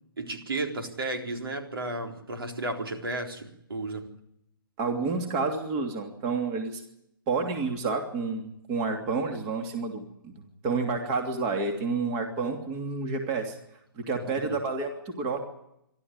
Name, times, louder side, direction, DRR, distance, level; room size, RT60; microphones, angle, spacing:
voice 1, 0.2-4.1 14.4-14.6, right 2 dB, 85° right, 4 dB, 3.9 m, -33 dB
voice 2, 4.8-6.8 7.3-13.5 13.9-15.4, right 4 dB, 25° right, 4 dB, 2.9 m, -30 dB
26.5 x 13.0 x 9.7 m, 0.79 s
hypercardioid pair, 155°, 12 cm